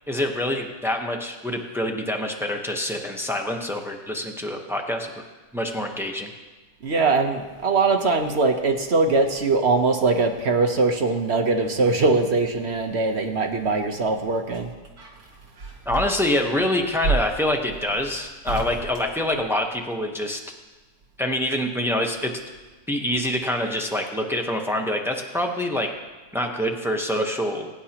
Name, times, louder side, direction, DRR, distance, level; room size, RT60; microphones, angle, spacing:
voice 1, 0.1-5.1 5.5-6.3 15.9-20.4 21.2-22.3 22.9-25.9 26.3-27.7, left 1 dB, ahead, 2 dB, 0.6 m, -26 dB
voice 2, 6.8-14.7, right 3 dB, 45° right, 5 dB, 1.0 m, -21 dB
sound 1, 14.0-20.0 21.4-22.3 22.5-22.6, right 4 dB, 75° right, 2.8 m, -33 dB
22.0 x 9.5 x 2.9 m, 1.3 s
omnidirectional pair, 1.9 m